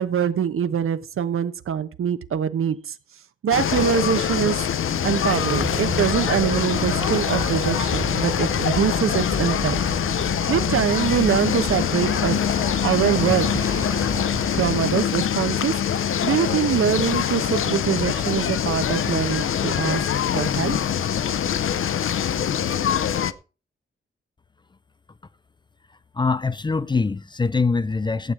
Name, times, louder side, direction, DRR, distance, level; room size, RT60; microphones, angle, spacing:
voice 1, 0.0-2.9 3.4-4.6 5.0-9.8 10.3-12.4 12.8-13.5 14.5-20.0 20.3-20.8, right 8 dB, 85° right, 1.1 m, -24 dB
sound 1, 3.5-23.3, left 9 dB, 75° left, 0.7 m, -24 dB
sound 2, 4.8-14.7, right 2 dB, 15° right, 3.5 m, -32 dB
voice 2, 26.1-28.3, left 4 dB, 20° left, 0.5 m, -23 dB
15.0 x 9.0 x 4.8 m
wide cardioid pair, 160°, 21 cm